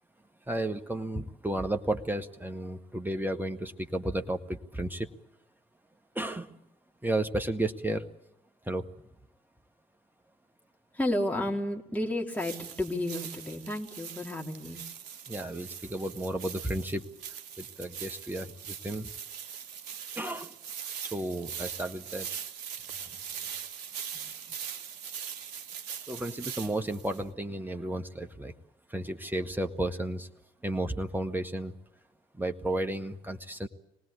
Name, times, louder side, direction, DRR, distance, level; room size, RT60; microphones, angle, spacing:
voice 1, 0.5-5.1 6.2-6.6 7.0-8.1 8.7-8.9 15.3-17.1 17.6-19.1 20.2-20.5 21.1-22.3 26.1-28.5 28.9-30.3 30.6-31.8 32.3-33.7, right 1 dB, 10° right, 5 dB, 1.7 m, -33 dB
voice 2, 10.9-14.8, left 1 dB, 5° left, -1 dB, 3.8 m, -32 dB
sound 1, 12.3-27.2, right 8 dB, 70° right, 0.8 m, -41 dB
25.5 x 19.5 x 8.5 m, 0.81 s
figure-of-eight pair, 45°, 21 cm